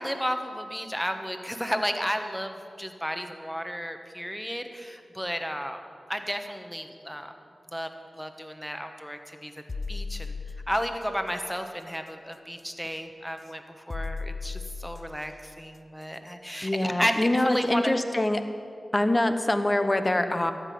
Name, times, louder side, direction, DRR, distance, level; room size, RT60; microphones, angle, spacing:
voice 1, 0.0-5.8 6.1-7.3 7.7-9.5 9.9-10.3 10.7-17.9, equal, ahead, 6 dB, 1.2 m, -33 dB
sound 1, 9.7-11.0 12.8-13.0 13.9-15.2 17.0-17.2 17.7-17.8, left 4 dB, 55° left, 0.5 m, -36 dB
voice 2, 16.6-18.4 18.9-20.5, left 1 dB, 35° left, 8 dB, 1.0 m, -24 dB
13.5 x 6.1 x 9.3 m, 2.4 s
cardioid pair, 40°, 0 cm